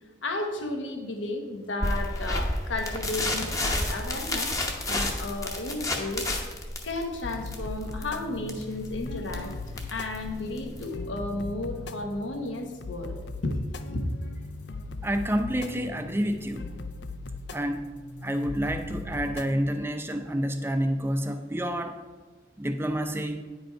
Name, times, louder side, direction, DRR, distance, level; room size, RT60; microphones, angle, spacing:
voice 1, 0.2-4.5 4.9-6.3 6.8-9.5 9.9-13.2 13.4-14.0, left 2 dB, 80° left, 4 dB, 1.1 m, -33 dB
sound 1, 1.8-11.0, left 1 dB, 15° left, 0.8 m, -31 dB
sound 2, 7.2-19.6, left 3 dB, 60° left, 0.5 m, -39 dB
voice 2, 15.0-16.6 17.5-17.9 18.2-22.0 22.6-23.4, equal, 10° right, 6 dB, 0.5 m, -28 dB
9.7 x 5.2 x 4.5 m, 1.3 s
head